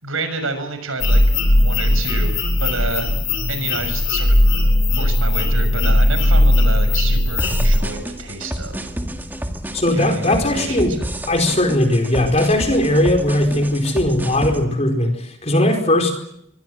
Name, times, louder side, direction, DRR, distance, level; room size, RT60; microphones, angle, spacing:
voice 1, 0.0-3.1 3.5-4.4 4.9-8.9 9.9-10.9, right 3 dB, 70° right, 9 dB, 6.6 m, -29 dB
sound 1, 1.0-7.8, left 1 dB, 60° left, 6.8 m, -17 dB
sound 2, 7.4-14.6, right 1 dB, 10° right, 1.9 m, -30 dB
voice 2, 9.7-11.0 11.3-16.1, left 1 dB, 30° left, 5 dB, 4.7 m, -18 dB
26.0 x 24.5 x 7.9 m, 0.73 s
head